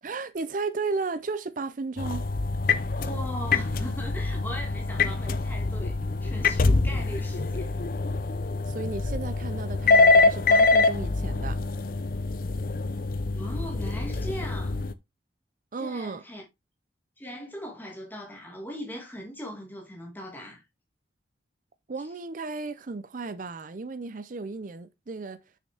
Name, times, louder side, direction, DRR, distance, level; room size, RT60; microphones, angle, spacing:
voice 1, 0.0-2.3 8.7-11.6 15.7-16.2 21.9-25.4, right 4 dB, 45° right, 0.5 m, -34 dB
sound 1, 2.0-14.9, left 3 dB, 50° left, 0.6 m, -25 dB
voice 2, 3.0-6.0 6.2-7.7 13.3-14.8 15.8-16.5 17.2-20.6 22.0-22.1, equal, 10° left, 2.0 m, -39 dB
6.6 x 6.4 x 3.4 m
head